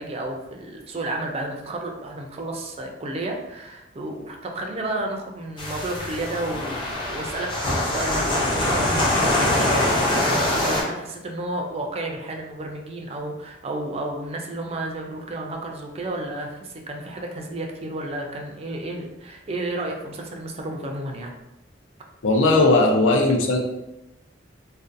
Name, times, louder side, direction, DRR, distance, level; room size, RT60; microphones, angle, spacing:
voice 1, 0.0-21.3, right 2 dB, 30° right, 1 dB, 0.4 m, -32 dB
sound 1, 5.6-10.8, left 1 dB, 25° left, 0.5 m, -23 dB
voice 2, 22.2-23.6, left 2 dB, 85° left, 2 dB, 0.5 m, -18 dB
2.5 x 2.2 x 2.5 m, 0.91 s
head